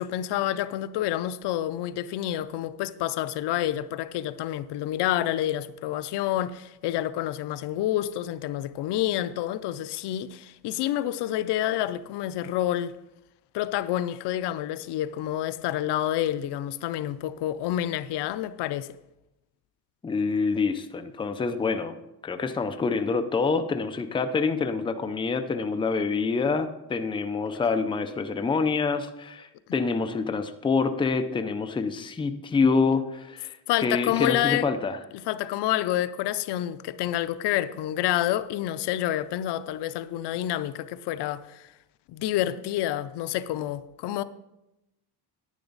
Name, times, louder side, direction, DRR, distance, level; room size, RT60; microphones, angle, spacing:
voice 1, 0.0-12.9 13.5-18.9 33.7-34.7 35.1-41.7 42.1-44.2, left 13 dB, 80° left, 0.6 m, -28 dB
voice 2, 20.0-22.0 22.2-35.0, left 4 dB, 15° left, 0.5 m, -26 dB
10.5 x 9.6 x 4.0 m
cardioid pair, 150°, 40 cm